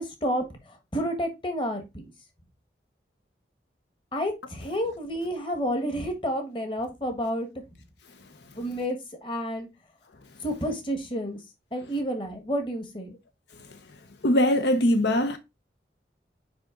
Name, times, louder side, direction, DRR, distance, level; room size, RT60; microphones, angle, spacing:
voice 1, 0.0-2.1 4.1-7.5 8.6-9.7 10.4-11.4 11.7-13.2, equal, 30° left, 1.5 m, -30 dB
voice 2, 14.2-15.4, left 1 dB, 75° left, 0.8 m, -21 dB
6.1 x 5.0 x 3.8 m
head